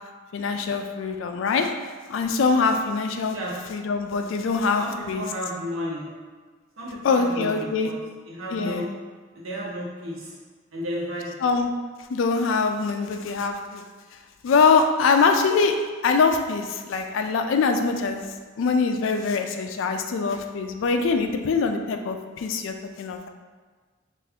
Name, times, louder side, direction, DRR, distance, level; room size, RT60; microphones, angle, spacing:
voice 1, 0.3-1.7 2.1-3.4 3.7-5.2 7.0-7.9 8.5-8.9 11.4-11.7 12.1-13.8 14.4-15.8 16.0-18.2 18.6-23.3, left 4 dB, 70° left, 5 dB, 0.3 m, -23 dB
voice 2, 4.8-6.1 6.8-8.0 8.3-8.9 9.3-10.3 10.7-11.5, equal, 90° right, -5 dB, 0.9 m, -33 dB
3.4 x 2.4 x 3.5 m, 1.4 s
head